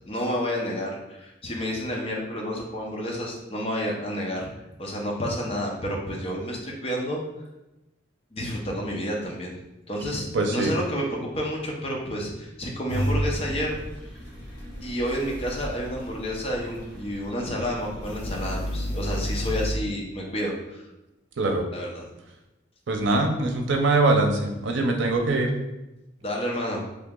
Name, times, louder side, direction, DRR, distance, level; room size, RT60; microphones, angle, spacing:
voice 1, 0.1-4.5 4.8-7.2 8.3-9.5 9.9-13.8 14.8-20.9 21.7-22.0 26.2-26.8, equal, 30° left, -2 dB, 0.7 m, -30 dB
voice 2, 10.3-10.7 21.4-21.6 22.9-25.5, right 2 dB, 75° right, 3 dB, 0.6 m, -22 dB
sound 1, 12.9-19.7, equal, 60° left, 1.3 m, -32 dB
3.3 x 2.9 x 3.7 m, 0.97 s
head